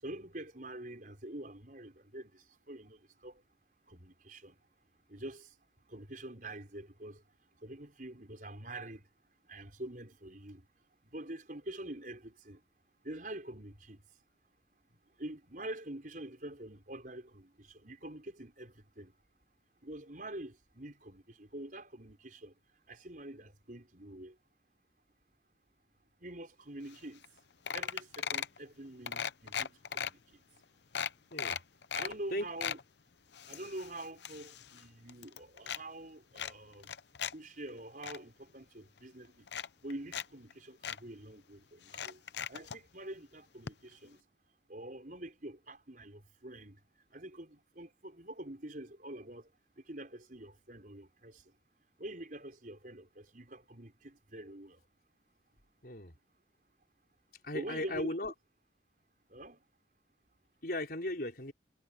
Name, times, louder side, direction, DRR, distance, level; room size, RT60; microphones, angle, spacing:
voice 1, 0.0-3.4 3.9-4.6 5.1-5.5 5.9-7.2 7.6-9.0 9.5-10.6 11.1-12.6 13.0-14.0 15.2-19.1 19.8-22.5 22.9-24.3 26.2-27.2 27.7-30.4 31.9-32.8 33.4-36.9 37.3-39.5 39.8-42.2 42.5-44.2 44.7-46.8 47.1-49.5 49.9-51.4 52.0-54.8 57.5-58.2 59.3-59.6, right 1 dB, 45° right, 5.8 m, -46 dB
sound 1, 26.9-27.0 27.2-27.4 27.7-28.6 29.1-30.1 30.6-30.7 30.9-32.1 32.4-32.8 33.3-34.8 35.1-35.8 36.4-37.3 37.7-38.2 39.0-39.1 39.5-40.3 40.5-40.6 40.8-41.0 41.9-42.8 43.7-43.8 44.0-44.1, left 8 dB, 70° left, 0.7 m, -38 dB
voice 2, 31.3-31.6 32.3-32.5 55.8-56.2 57.4-58.3 60.6-61.5, left 1 dB, 55° left, 4.7 m, -37 dB
head